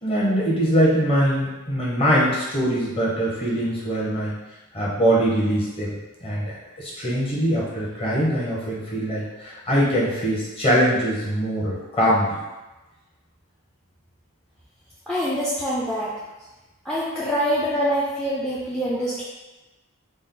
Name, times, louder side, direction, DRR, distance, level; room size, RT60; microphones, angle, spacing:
voice 1, 0.0-4.3 4.7-5.9 6.2-12.4, equal, 25° left, -6 dB, 0.8 m, -22 dB
voice 2, 15.1-16.1 16.9-19.2, equal, 5° left, -8 dB, 0.4 m, -25 dB
4.1 x 2.0 x 3.7 m, 1.1 s
head